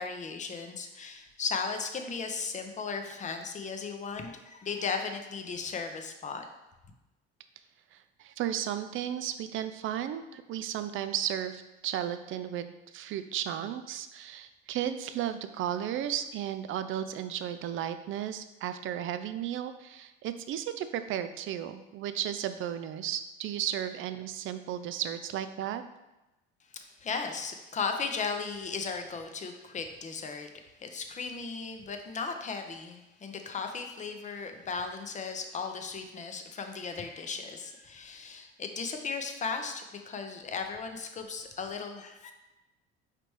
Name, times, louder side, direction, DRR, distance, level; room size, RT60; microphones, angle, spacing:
voice 1, 0.0-6.4 26.7-30.5 30.8-42.3, left 5 dB, 25° left, 5 dB, 0.6 m, -36 dB
voice 2, 7.9-25.8, right 10 dB, 45° right, 10 dB, 0.4 m, -34 dB
5.0 x 3.3 x 3.1 m, 0.99 s
hypercardioid pair, 70°, 30 cm